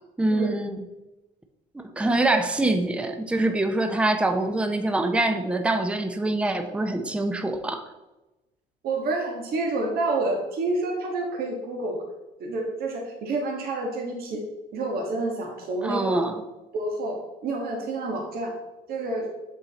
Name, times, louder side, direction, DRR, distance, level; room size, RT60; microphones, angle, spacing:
voice 1, 0.2-0.8 1.7-7.9 15.8-16.4, right 2 dB, 5° right, 7 dB, 0.6 m, -25 dB
voice 2, 8.8-12.0 12.4-14.4 14.7-16.3 16.7-18.5 18.9-19.3, right 2 dB, 65° right, 0 dB, 1.5 m, -28 dB
7.1 x 5.5 x 4.1 m, 1.0 s
cardioid pair, 110°, 17 cm